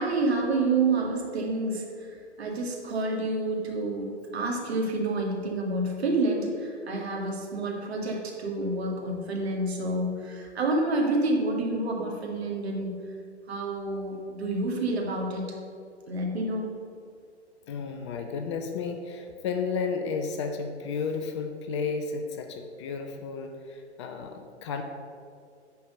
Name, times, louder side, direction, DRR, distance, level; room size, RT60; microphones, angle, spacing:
voice 1, 0.0-13.1 13.5-15.6 16.1-16.7, right 2 dB, 60° right, 0 dB, 2.1 m, -28 dB
voice 2, 17.7-24.8, left 5 dB, 25° left, 6 dB, 0.5 m, -32 dB
10.0 x 4.7 x 6.5 m, 2.3 s
figure-of-eight pair, 115°, 35 cm